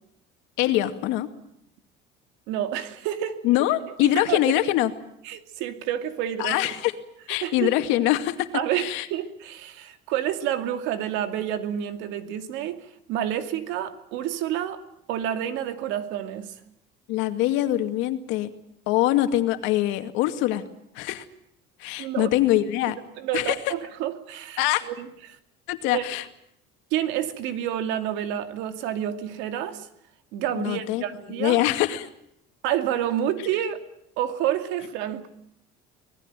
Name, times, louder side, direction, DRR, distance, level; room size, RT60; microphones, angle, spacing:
voice 1, 0.6-1.3 3.4-4.9 6.4-6.9 7.3-8.5 8.7-9.1 17.1-18.5 18.9-20.6 20.9-21.2 21.8-22.9 23.3-23.6 24.6-24.8 25.7-26.3 30.5-32.1, left 14 dB, 75° left, 2.3 m, -23 dB
voice 2, 2.5-3.4 4.0-4.5 5.2-6.7 7.4-7.7 8.5-14.8 15.1-16.5 22.0-22.3 23.2-25.4 25.9-26.1 26.9-29.9 30.3-31.6 32.6-33.8 34.2-35.3, right 11 dB, 75° right, 2.6 m, -29 dB
25.5 x 20.0 x 9.1 m
cardioid pair, 175°, 19 cm